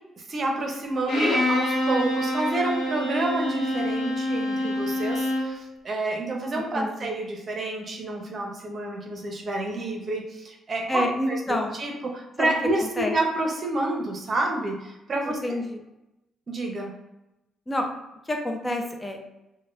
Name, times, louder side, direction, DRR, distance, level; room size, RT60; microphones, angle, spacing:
voice 1, 0.2-15.4 16.5-16.9, right 2 dB, 45° right, 1 dB, 0.7 m, -29 dB
Bowed string instrument, 1.1-5.6, left 1 dB, 85° left, 1.0 m, -26 dB
voice 2, 6.7-7.1 10.9-11.7 12.4-13.1 15.4-15.8 17.7-17.9 18.2-19.2, left 1 dB, 20° left, 2 dB, 0.5 m, -28 dB
4.2 x 2.2 x 2.4 m, 0.94 s
cardioid pair, 90°, 0 cm